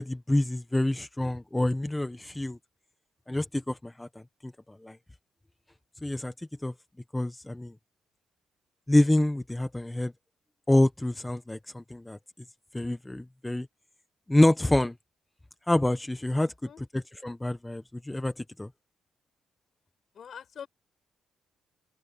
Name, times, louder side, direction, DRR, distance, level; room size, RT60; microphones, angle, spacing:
voice 1, 0.0-2.6 3.3-5.0 6.0-6.7 7.1-7.7 8.9-10.1 10.7-12.2 12.7-13.7 14.3-14.9 15.7-16.5 16.9-18.7, left 1 dB, 10° left, 1.0 m, -27 dB
voice 2, 16.4-16.8 20.1-20.7, left 7 dB, 55° left, 6.8 m, -44 dB
open air
cardioid pair, 90°, 0 cm